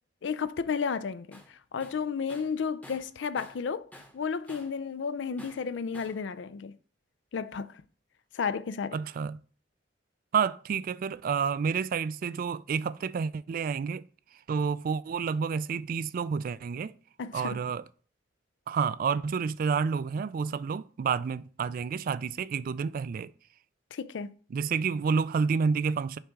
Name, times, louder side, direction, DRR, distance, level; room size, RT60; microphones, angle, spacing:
voice 1, 0.2-3.9 4.1-6.8 7.3-7.7 8.3-9.0 17.2-17.6 23.9-24.3, left 6 dB, 80° left, 0.4 m, -32 dB
Tools, 1.3-1.5 1.8-3.7 3.9-4.8 5.4-6.2, left 1 dB, 10° left, 0.9 m, -51 dB
voice 2, 8.9-9.4 10.3-14.0 14.5-16.9 17.3-17.8 18.7-23.3 24.5-26.2, right 6 dB, 50° right, 0.3 m, -29 dB
6.5 x 3.6 x 4.6 m
head